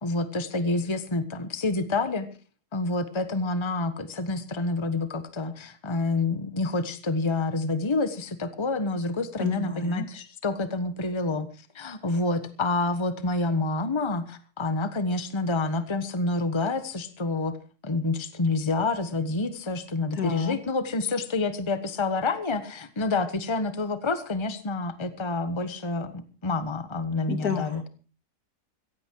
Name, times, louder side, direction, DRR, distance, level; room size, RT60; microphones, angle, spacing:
voice 1, 0.0-2.3 2.7-11.5 11.7-17.5 17.8-27.8, left 3 dB, 20° left, 11 dB, 1.3 m, -28 dB
voice 2, 9.4-10.1 20.1-20.6 27.3-27.9, left 7 dB, 70° left, 8 dB, 2.7 m, -30 dB
16.0 x 15.5 x 4.7 m, 0.35 s
omnidirectional pair, 1.6 m